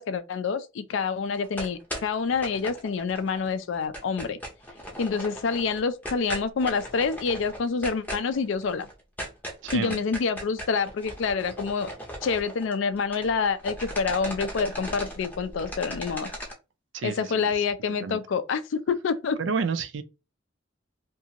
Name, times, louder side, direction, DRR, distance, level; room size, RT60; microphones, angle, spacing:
voice 1, 0.0-4.4 5.0-8.9 9.7-11.9 12.2-16.3 17.0-19.4, left 5 dB, 70° left, 0.4 m, -27 dB
sound 1, 1.3-3.5 3.7-13.3 13.6-16.5, equal, 10° left, 0.6 m, -38 dB
voice 2, 9.6-10.0 16.9-17.5 18.0-18.2 19.4-20.0, right 5 dB, 65° right, 0.4 m, -30 dB
2.6 x 2.4 x 2.8 m
head